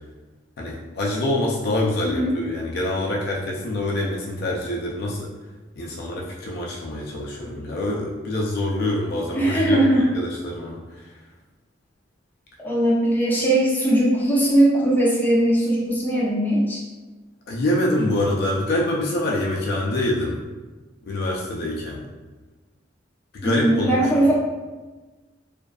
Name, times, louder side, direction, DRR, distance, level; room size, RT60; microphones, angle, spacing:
voice 1, 0.6-5.3 5.8-11.1 17.5-20.4 21.0-22.0 23.3-24.3, left 1 dB, 55° left, -2 dB, 0.4 m, -25 dB
voice 2, 9.3-10.1 12.6-16.8 23.4-24.3, right 1 dB, 10° left, -7 dB, 0.6 m, -19 dB
2.5 x 2.3 x 2.2 m, 1.2 s
head